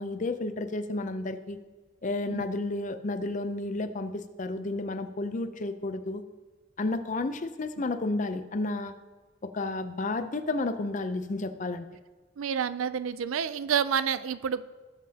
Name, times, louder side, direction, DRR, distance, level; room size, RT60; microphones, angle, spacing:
voice 1, 0.0-1.6 2.0-6.2 6.8-8.9 9.4-11.9, left 2 dB, 40° left, 10 dB, 0.6 m, -31 dB
voice 2, 12.4-14.6, right 7 dB, 90° right, 14 dB, 0.4 m, -29 dB
17.0 x 7.6 x 2.8 m, 1.3 s
head